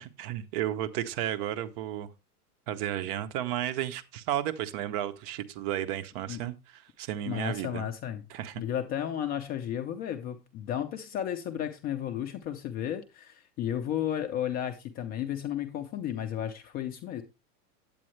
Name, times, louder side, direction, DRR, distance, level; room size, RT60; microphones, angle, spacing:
voice 1, 0.0-2.1 2.7-7.9 8.3-8.6, right 12 dB, 40° right, 0.8 m, -33 dB
voice 2, 7.3-8.2 8.6-17.2, left 10 dB, 20° left, 0.5 m, -33 dB
8.7 x 8.6 x 3.2 m
hypercardioid pair, 135°, 47 cm